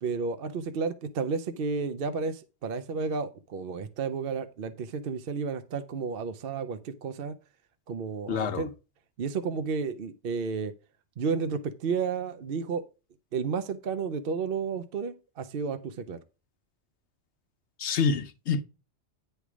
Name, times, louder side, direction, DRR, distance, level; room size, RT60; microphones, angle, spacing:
voice 1, 0.0-7.4 7.9-8.7 9.2-10.7 11.2-12.8 13.3-16.2, right 5 dB, 55° right, 0.8 m, -32 dB
voice 2, 8.3-8.7 17.8-18.6, left 5 dB, 70° left, 1.1 m, -27 dB
9.7 x 3.3 x 6.0 m
omnidirectional pair, 1.2 m